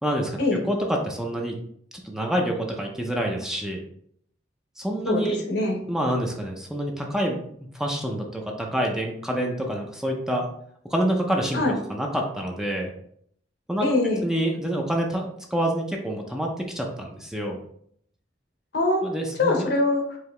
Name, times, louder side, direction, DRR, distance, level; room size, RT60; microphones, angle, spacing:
voice 1, 0.0-0.4 0.7-1.6 2.0-3.8 4.8-5.4 5.9-10.5 10.9-11.6 11.9-12.9 13.7-13.9 14.2-17.6 19.0-19.7, right 1 dB, 5° right, 0 dB, 0.5 m, -27 dB
voice 2, 5.1-5.8 11.5-11.8 13.8-14.2 18.7-19.0 19.4-20.0, left 2 dB, 60° left, 2 dB, 0.9 m, -23 dB
4.8 x 2.7 x 3.2 m, 0.67 s
head